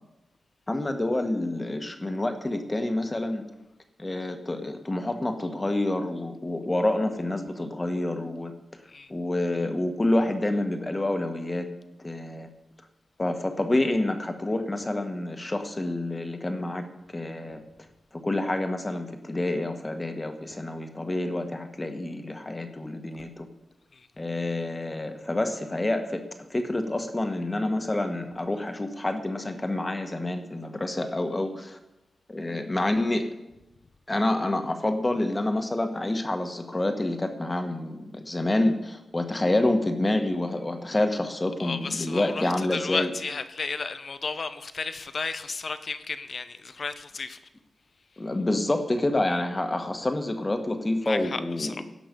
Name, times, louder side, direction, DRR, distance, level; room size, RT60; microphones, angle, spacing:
voice 1, 0.7-3.4 4.0-8.5 9.1-11.7 12.0-12.5 13.2-16.8 17.1-17.6 18.1-23.5 24.2-26.2 26.5-31.8 32.3-33.3 34.1-43.1 48.2-51.8, left 1 dB, 25° left, 6 dB, 1.4 m, -28 dB
voice 2, 41.6-47.4 49.2-49.4 51.0-51.8, left 4 dB, 55° left, 11 dB, 0.8 m, -33 dB
17.0 x 6.1 x 5.3 m, 0.96 s
cardioid pair, 70°, 0 cm